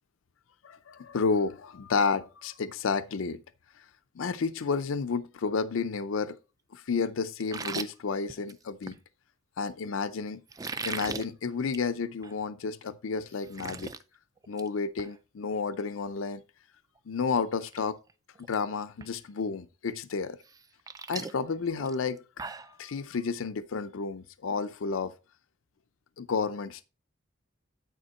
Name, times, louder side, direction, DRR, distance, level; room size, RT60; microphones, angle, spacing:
voice 1, 0.6-3.4 4.2-6.4 6.7-9.0 9.6-10.4 10.8-13.9 14.5-16.4 17.1-18.0 18.5-20.4 21.1-25.1 26.2-26.8, left 5 dB, 90° left, 0.5 m, -31 dB
sound 1, 7.4-9.0 10.5-11.2 11.6-11.9 12.2-12.3 12.8-12.9 13.2-14.0 14.4-14.7 15.0-15.1 17.0-17.1 17.5-17.8 18.1-18.5 19.0-19.1 20.4-22.7, right 4 dB, 20° right, 0.3 m, -38 dB
9.1 x 4.4 x 4.2 m
head